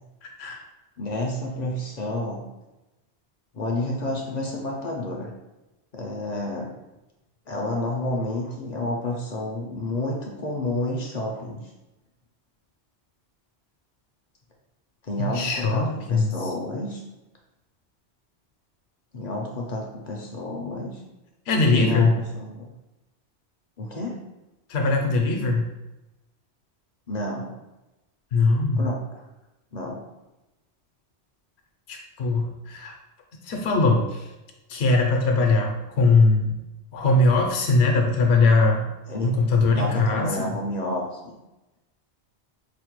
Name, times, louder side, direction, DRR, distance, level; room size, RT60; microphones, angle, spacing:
voice 1, 1.0-2.4 3.5-5.3 5.9-6.7 7.5-11.6 15.0-17.0 19.1-21.0 21.7-22.6 23.8-24.2 27.1-27.5 28.8-29.2 29.7-30.0 39.1-39.3 39.7-41.4, left 1 dB, 50° left, 0 dB, 0.5 m, -30 dB
voice 2, 15.2-16.4 21.5-22.2 24.7-25.7 28.3-28.9 31.9-32.9 33.5-34.2 34.7-36.6 36.9-38.9 39.2-40.5, left 3 dB, 75° left, 2 dB, 0.9 m, -21 dB
4.9 x 2.1 x 3.0 m, 1.0 s
omnidirectional pair, 1.1 m